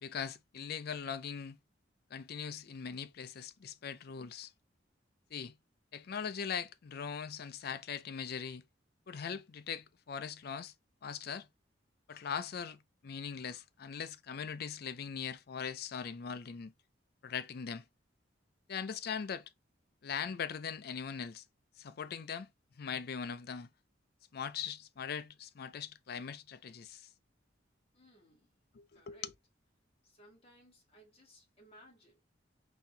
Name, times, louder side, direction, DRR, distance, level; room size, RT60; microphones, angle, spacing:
voice 1, 0.0-1.6 2.1-4.5 5.3-5.5 5.9-8.6 9.1-10.7 11.0-11.5 12.1-16.7 17.2-17.8 18.7-19.4 20.0-21.4 21.8-22.5 22.8-23.7 24.3-27.1 28.7-29.2, left 7 dB, 55° left, 0.4 m, -40 dB
voice 2, 27.9-28.6 28.9-29.3 30.0-32.2, equal, 35° left, 2.0 m, -61 dB
4.2 x 2.7 x 3.3 m
head